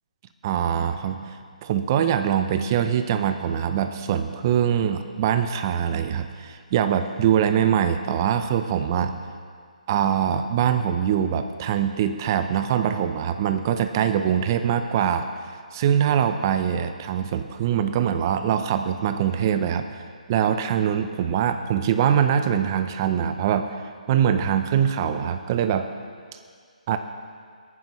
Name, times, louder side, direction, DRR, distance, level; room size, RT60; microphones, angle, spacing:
voice 1, 0.4-9.2 9.9-15.3 15.7-25.9 26.9-27.0, right 9 dB, 25° right, 8 dB, 0.6 m, -23 dB
19.0 x 9.4 x 3.1 m, 2.1 s
hypercardioid pair, 160°, 4 cm